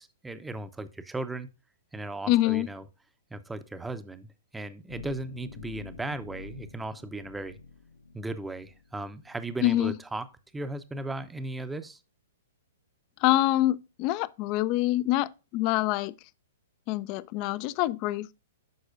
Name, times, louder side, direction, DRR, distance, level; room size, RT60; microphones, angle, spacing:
voice 1, 0.0-1.5 1.9-2.8 3.3-7.6 8.1-10.3 10.5-12.0, right 2 dB, 5° right, 0.6 m, -36 dB
voice 2, 2.3-2.7 9.6-9.9 13.2-16.1 16.9-18.3, left 15 dB, 35° left, 0.3 m, -25 dB
sound 1, 4.9-9.7, left 4 dB, 75° left, 1.0 m, -47 dB
9.3 x 6.2 x 2.4 m
figure-of-eight pair, 110°, 0 cm